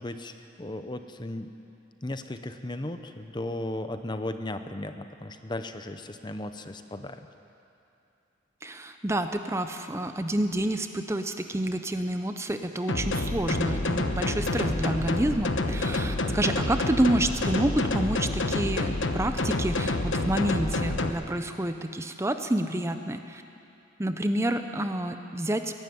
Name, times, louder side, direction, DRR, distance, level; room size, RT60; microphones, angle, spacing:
voice 1, 0.0-1.5 2.0-7.3, left 1 dB, 25° left, 9 dB, 0.7 m, -36 dB
voice 2, 8.6-23.4 24.0-25.8, right 1 dB, 15° right, 7 dB, 0.7 m, -28 dB
sound 1, 12.9-21.1, left 2 dB, 80° left, 1.1 m, -28 dB
22.0 x 12.0 x 9.7 m, 2.7 s
head